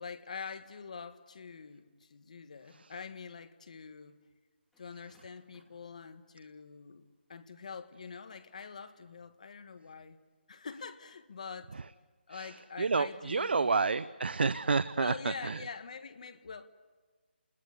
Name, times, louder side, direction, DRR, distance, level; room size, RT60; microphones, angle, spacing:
voice 1, 0.0-4.2 4.8-10.2 10.5-11.8 12.3-13.7 15.0-16.7, left 5 dB, 40° left, 1.4 m, -45 dB
sound 1, 4.7-7.4 8.0-8.9, equal, ahead, 3.5 m, -67 dB
voice 2, 12.3-15.6, right 4 dB, 65° right, 0.7 m, -30 dB
29.0 x 20.5 x 8.2 m
hypercardioid pair, 175°, 6 cm